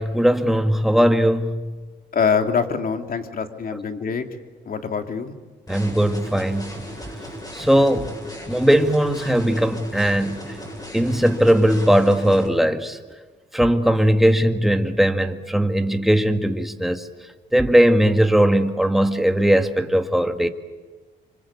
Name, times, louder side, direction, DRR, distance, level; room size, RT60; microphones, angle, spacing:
voice 1, 0.0-1.6 5.7-6.8 7.5-8.1 8.5-10.4 10.9-13.0 13.5-17.0 17.5-20.5, equal, ahead, 6 dB, 1.9 m, -19 dB
voice 2, 2.1-4.2 4.6-5.3, left 6 dB, 45° left, 6 dB, 2.9 m, -24 dB
sound 1, 5.7-12.5, equal, 20° left, 7.9 m, -36 dB
26.0 x 25.5 x 8.4 m, 1.3 s
cardioid pair, 90°, 20 cm